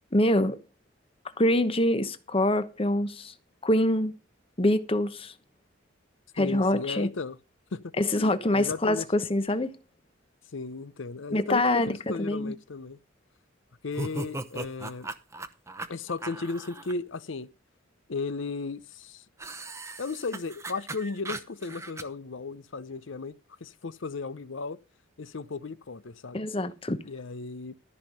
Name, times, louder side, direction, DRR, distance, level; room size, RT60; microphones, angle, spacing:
voice 1, 0.1-0.6 1.4-3.3 3.6-4.1 4.6-5.3 6.4-7.1 8.0-9.7 11.3-12.5 26.3-27.0, left 1 dB, 25° left, 1.0 m, -25 dB
voice 2, 6.4-7.4 7.7-7.8 8.2-9.0 10.5-13.0 13.8-15.1 15.9-17.5 18.1-19.2 20.0-23.3 23.6-24.8 25.2-26.5 27.0-27.8, left 4 dB, 65° left, 0.7 m, -35 dB
sound 1, 13.9-16.9 19.4-22.0, right 2 dB, 15° right, 0.8 m, -38 dB
13.5 x 5.5 x 6.6 m
head